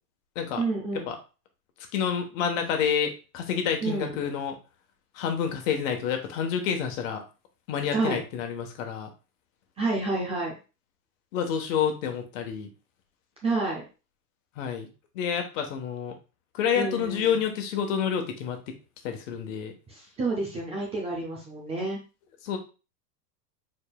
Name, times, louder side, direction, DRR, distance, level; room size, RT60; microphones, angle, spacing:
voice 1, 0.6-1.1 3.8-4.1 7.9-8.2 9.8-10.5 13.4-13.8 16.7-17.4 19.9-22.0, right 3 dB, 15° right, -1 dB, 0.5 m, -29 dB
voice 2, 1.9-4.5 5.1-7.2 7.7-9.1 11.3-12.7 14.6-14.9 15.1-16.1 16.5-18.6 19.0-19.7 22.4-22.6, left 7 dB, 50° left, 5 dB, 1.2 m, -28 dB
4.9 x 4.4 x 2.3 m, 0.32 s
supercardioid pair, 150°, 48 cm